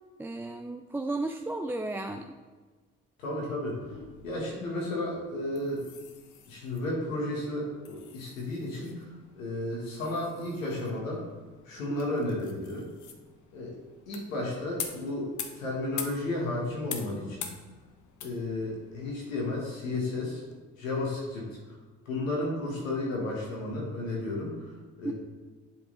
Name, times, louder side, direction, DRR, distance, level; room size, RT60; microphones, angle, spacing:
voice 1, 0.2-2.3 11.9-12.0 25.0-25.1, right 2 dB, 5° right, 4 dB, 0.3 m, -33 dB
voice 2, 3.2-3.8 4.2-5.8 6.5-9.1 9.4-11.2 11.7-12.9 13.5-13.7 14.1-17.5 18.2-20.4 20.8-21.5 22.1-24.6 25.0-25.1, left 2 dB, 85° left, -3 dB, 1.8 m, -33 dB
sound 1, 3.7-20.6, left 7 dB, 50° left, 1.0 m, -46 dB
7.9 x 4.7 x 3.9 m, 1.4 s
hypercardioid pair, 50°, 38 cm